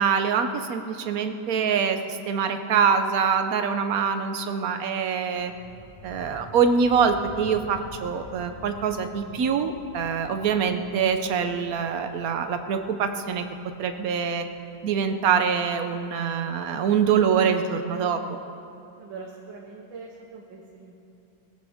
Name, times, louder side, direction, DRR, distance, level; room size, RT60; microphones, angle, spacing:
voice 1, 0.0-5.5 6.0-13.4 13.8-14.5 14.8-18.4, right 6 dB, 60° right, 7 dB, 1.1 m, -24 dB
sound 1, 5.4-16.4, left 1 dB, 10° right, 1.5 m, -48 dB
voice 2, 19.0-21.0, right 4 dB, 80° right, -1 dB, 1.8 m, -42 dB
20.5 x 15.0 x 3.6 m, 2.7 s
omnidirectional pair, 2.1 m